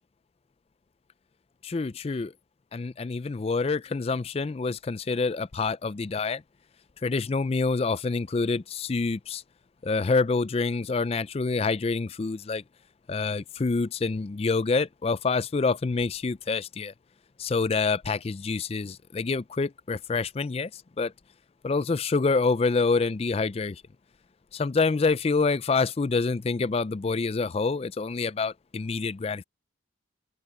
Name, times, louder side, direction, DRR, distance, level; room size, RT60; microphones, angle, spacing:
voice 1, 1.6-2.3 2.7-6.4 7.0-9.4 9.8-12.6 13.1-16.9 17.4-21.1 21.6-23.8 24.5-29.4, left 4 dB, 30° left, 0.3 m, -27 dB
open air
head